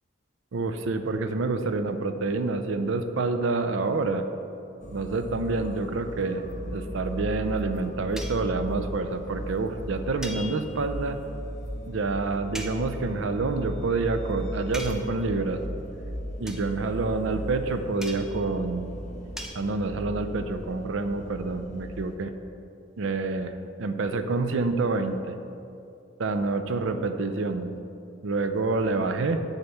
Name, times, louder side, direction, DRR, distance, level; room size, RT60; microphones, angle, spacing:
voice 1, 0.5-4.2 4.9-11.2 11.9-15.6 16.4-18.9 19.5-22.3 23.0-25.4 26.2-27.7 28.2-29.4, right 3 dB, 70° right, 8 dB, 0.5 m, -27 dB
sound 1, 4.8-22.2, equal, 35° left, 0.6 m, -37 dB
sound 2, 8.2-8.5 10.2-11.0 12.5-12.9 14.7-15.2 16.5-16.7 18.0-18.5 19.4-19.6, equal, 5° right, 0.3 m, -39 dB
7.9 x 4.1 x 6.9 m, 2.7 s
head